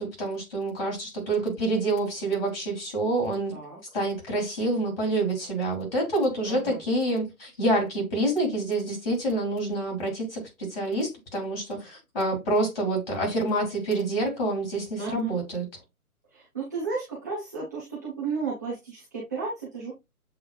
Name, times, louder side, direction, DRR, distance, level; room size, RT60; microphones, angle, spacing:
voice 1, 0.0-3.6 3.9-15.6, right 2 dB, 40° left, 3.1 m, -27 dB
voice 2, 6.4-6.8 15.0-15.4 16.3-19.9, right 4 dB, 10° right, 0.8 m, -33 dB
8.0 x 2.9 x 2.3 m
hypercardioid pair, 165°, 45 cm